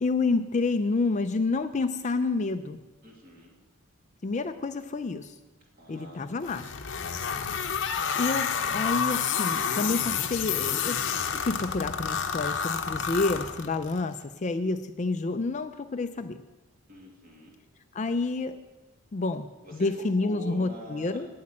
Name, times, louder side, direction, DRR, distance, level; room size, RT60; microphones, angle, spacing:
voice 1, 0.0-2.8 4.2-5.4 5.9-6.7 7.7-7.8 8.2-11.0 11.3-16.4 17.9-18.6 19.1-21.3, left 3 dB, 30° left, 9 dB, 0.4 m, -29 dB
voice 2, 3.0-3.5 5.8-6.4 6.7-6.8 16.9-17.5 19.6-21.2, left 1 dB, 40° right, -1 dB, 2.6 m, -44 dB
sound 1, 6.4-14.0, left 7 dB, 55° left, 0.8 m, -29 dB
8.6 x 8.2 x 8.7 m, 1.1 s
head